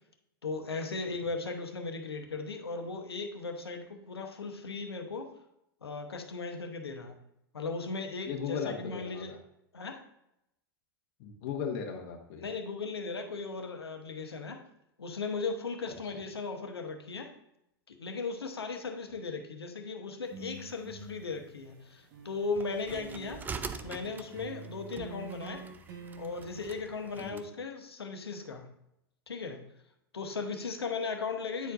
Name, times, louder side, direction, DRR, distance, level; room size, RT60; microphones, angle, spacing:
voice 1, 0.4-5.3 5.8-7.2 7.5-9.3 9.7-10.0 12.4-14.6 15.0-17.3 17.9-23.4 23.8-25.6 26.2-28.7 29.3-29.6 30.1-31.7, left 4 dB, 85° left, 5 dB, 0.9 m, -37 dB
voice 2, 8.3-9.4 11.2-12.5 27.2-27.5, left 7 dB, 50° left, 3 dB, 0.9 m, -37 dB
sound 1, 20.2-22.5 22.9-26.8, right 3 dB, 45° right, 1.3 m, -47 dB
sound 2, 22.5-27.5, right 5 dB, 15° right, 0.3 m, -44 dB
9.2 x 4.5 x 2.4 m, 0.81 s
hypercardioid pair, 100°, 13 cm